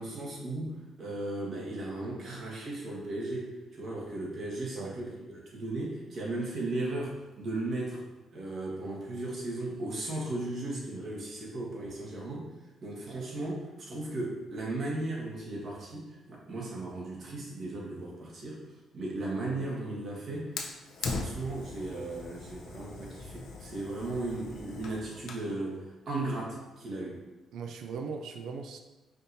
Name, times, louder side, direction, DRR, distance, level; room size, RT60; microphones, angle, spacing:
voice 1, 0.0-8.0 8.3-12.5 12.8-18.6 18.9-20.6 21.0-27.2, right 2 dB, 55° right, -3 dB, 1.3 m, -36 dB
voice 2, 4.7-5.2 12.0-12.1 27.5-28.8, right 5 dB, 75° right, 5 dB, 0.3 m, -39 dB
Fire, 20.6-25.5, left 4 dB, 75° left, 0.5 m, -40 dB
5.2 x 2.8 x 2.6 m, 1.1 s
cardioid pair, 90°, 0 cm